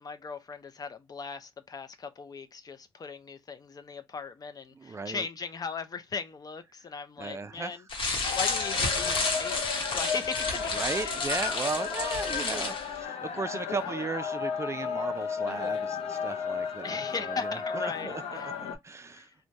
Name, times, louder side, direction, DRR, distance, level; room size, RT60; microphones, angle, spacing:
voice 1, 0.0-7.8 8.3-11.2 13.7-13.9 16.8-18.5 19.1-19.3, left 5 dB, 40° left, 0.5 m, -38 dB
voice 2, 4.7-5.3 7.2-7.8 10.7-19.3, right 4 dB, 30° right, 0.4 m, -36 dB
sound 1, 7.9-12.9, left 3 dB, 55° left, 1.0 m, -31 dB
sound 2, 8.2-18.8, left 6 dB, 90° left, 0.6 m, -34 dB
3.2 x 2.2 x 2.5 m
cardioid pair, 90°, 10 cm